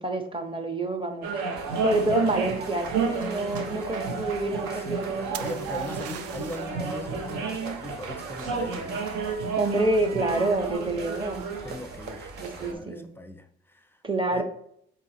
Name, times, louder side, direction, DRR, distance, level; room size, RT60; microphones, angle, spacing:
voice 1, 0.0-1.3 1.8-6.0 7.3-7.5 9.6-11.4 12.4-13.0 14.0-14.4, right 2 dB, 15° right, 0.8 m, -28 dB
sound 1, 1.2-12.7, right 5 dB, 70° right, 0.8 m, -32 dB
sound 2, 1.6-12.7, right 2 dB, 35° right, 1.1 m, -47 dB
voice 2, 4.8-9.1 11.6-12.3 12.6-14.0 14.3-14.4, left 1 dB, 5° left, 0.5 m, -40 dB
sound 3, 5.3-6.8 10.5-10.9, right 11 dB, 55° right, 0.4 m, -40 dB
3.7 x 3.0 x 4.1 m
hypercardioid pair, 55°, 31 cm